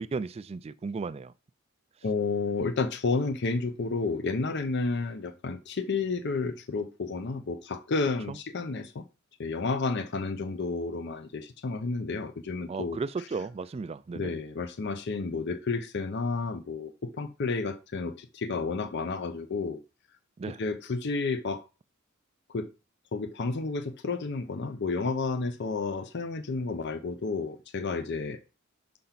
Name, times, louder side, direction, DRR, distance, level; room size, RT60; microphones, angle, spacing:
voice 1, 0.0-1.3 8.3-8.4 12.7-14.3 20.4-20.6, right 4 dB, 30° right, 0.3 m, -35 dB
voice 2, 2.0-9.0 9.4-13.0 14.1-19.8 20.6-21.6 22.5-22.7 23.1-28.4, left 3 dB, 55° left, 0.6 m, -31 dB
5.8 x 5.2 x 5.8 m
head